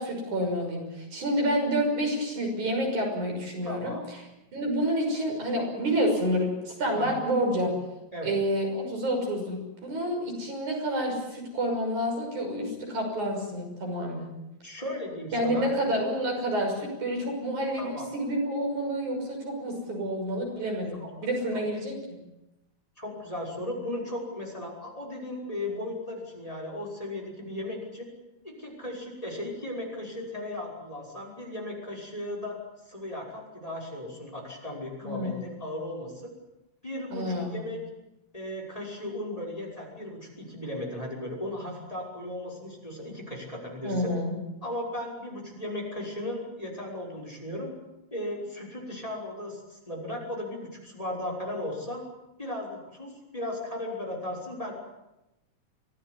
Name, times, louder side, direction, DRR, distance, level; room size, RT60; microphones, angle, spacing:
voice 1, 0.0-3.9 4.5-7.7 8.2-14.3 15.3-22.2 35.0-35.5 37.1-37.6 43.8-44.4, equal, 85° right, 2 dB, 7.6 m, -29 dB
voice 2, 3.6-4.0 6.9-7.2 8.1-8.3 14.6-15.7 17.8-18.1 21.0-21.1 21.5-21.6 23.0-28.1 28.4-32.6 32.9-36.3 36.8-37.8 38.3-44.1 44.6-47.7 48.1-52.0 52.4-54.7, left 1 dB, 10° left, 1 dB, 5.8 m, -36 dB
24.5 x 17.0 x 9.6 m, 0.94 s
omnidirectional pair, 3.3 m